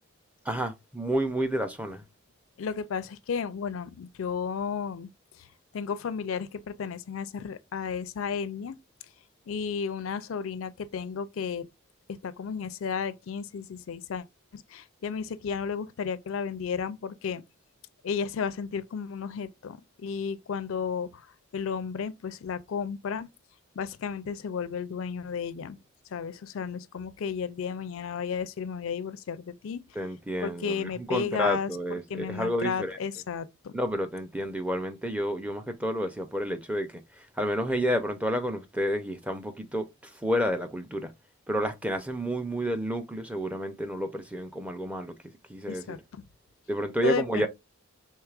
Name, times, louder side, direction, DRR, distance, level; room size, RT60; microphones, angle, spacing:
voice 1, 0.5-2.0 30.0-33.0 33.7-41.1 41.5-45.1 45.5-46.0 46.7-47.5, equal, 5° right, 0.5 m, -30 dB
voice 2, 2.6-5.1 5.4-5.5 5.7-8.8 9.5-11.7 12.2-14.2 14.5-17.4 18.0-21.3 21.5-23.3 23.8-25.8 26.1-29.8 30.4-31.7 32.1-33.7 45.7-46.2 47.0-47.5, left 6 dB, 65° left, 0.4 m, -33 dB
4.6 x 3.2 x 2.4 m
head